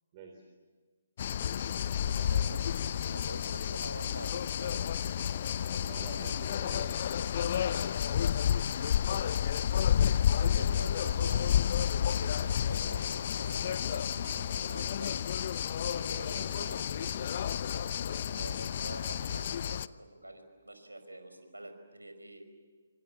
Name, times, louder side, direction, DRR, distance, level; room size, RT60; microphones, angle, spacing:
voice 1, 0.1-0.4 5.8-7.7 15.7-17.0, right 4 dB, 30° right, 3 dB, 3.6 m, -49 dB
sound 1, 1.2-19.9, left 9 dB, 45° left, 0.7 m, -31 dB
voice 2, 2.0-6.3 9.1-9.3 10.4-17.3 17.9-22.4, right 1 dB, 90° right, 7 dB, 5.3 m, -47 dB
27.5 x 26.0 x 7.5 m, 1.5 s
figure-of-eight pair, 140°, 0 cm